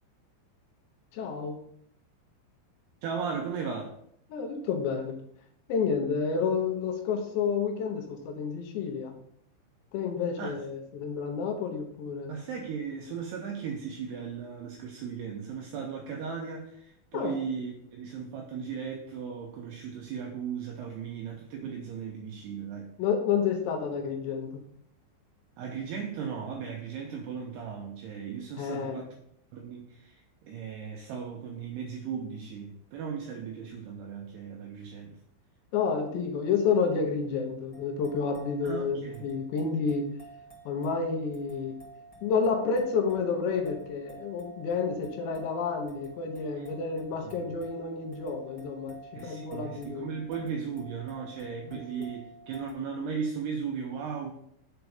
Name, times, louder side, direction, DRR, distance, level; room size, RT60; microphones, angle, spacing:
voice 1, 1.1-1.6 4.3-5.2 5.7-9.2 9.9-12.4 17.1-17.4 23.0-24.6 28.6-29.1 35.7-40.1 40.7-41.8 42.2-50.1 51.6-51.8, left 5 dB, 75° left, 3.1 m, -30 dB
voice 2, 3.0-4.0 10.4-10.5 12.3-22.9 25.6-29.1 29.5-35.2 38.6-39.2 47.2-47.3 49.2-54.3, right 6 dB, 85° right, 2.3 m, -37 dB
sound 1, 37.7-52.7, right 2 dB, 30° left, 0.6 m, -51 dB
7.1 x 4.6 x 5.3 m
omnidirectional pair, 5.5 m